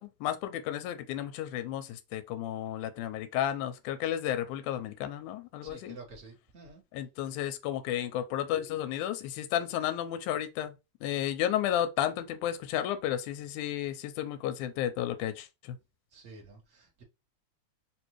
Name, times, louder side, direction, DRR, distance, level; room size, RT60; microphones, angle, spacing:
voice 1, 0.0-6.0 6.9-10.7 11.0-15.8, left 11 dB, 90° left, 2.0 m, -32 dB
voice 2, 5.6-6.8 16.1-17.0, right 3 dB, 45° right, 0.9 m, -50 dB
4.6 x 2.6 x 3.0 m
omnidirectional pair, 3.4 m